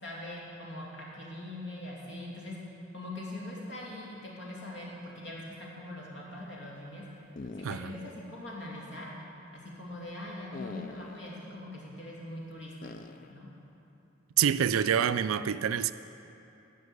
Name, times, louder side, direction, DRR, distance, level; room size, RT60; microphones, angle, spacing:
voice 1, 0.0-2.6 2.9-7.0 7.5-9.1 9.5-12.9 13.3-13.5, left 1 dB, 60° left, 2.5 m, -42 dB
sound 1, 7.4-8.2 8.5-8.6 10.5-11.3 12.8-13.3, left 3 dB, 40° left, 0.3 m, -44 dB
voice 2, 14.4-15.9, right 8 dB, 90° right, 0.4 m, -26 dB
13.0 x 5.4 x 8.1 m
head